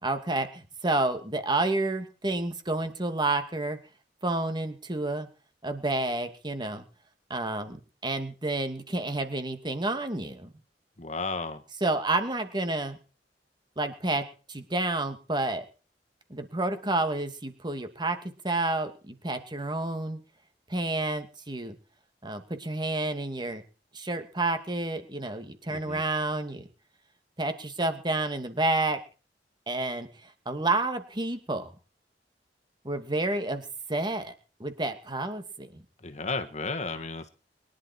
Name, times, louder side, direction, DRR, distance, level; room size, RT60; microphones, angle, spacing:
voice 1, 0.0-3.8 4.2-5.3 5.6-6.9 7.3-10.5 11.8-13.0 13.8-15.6 16.3-20.2 20.7-21.8 22.2-23.6 23.9-26.7 27.4-29.0 29.7-30.1 30.5-31.7 32.8-34.3 34.6-35.8, right 2 dB, 25° right, 8 dB, 2.5 m, -30 dB
voice 2, 11.0-11.6 25.7-26.0 36.0-37.3, left 3 dB, 40° left, 8 dB, 1.7 m, -33 dB
23.5 x 11.5 x 4.6 m, 0.36 s
head